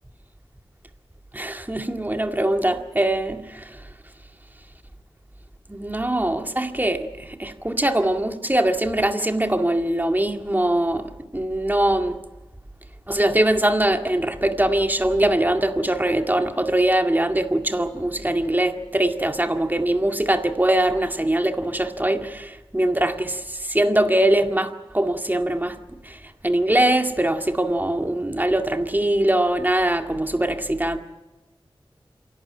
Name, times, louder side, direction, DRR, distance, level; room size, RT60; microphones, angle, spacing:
voice 1, 1.3-3.8 5.7-12.2 13.1-23.3 23.7-25.8 26.0-26.2 26.4-31.0, right 1 dB, 20° right, 2.1 m, -22 dB
27.0 x 12.0 x 10.0 m
cardioid pair, 40°, 9 cm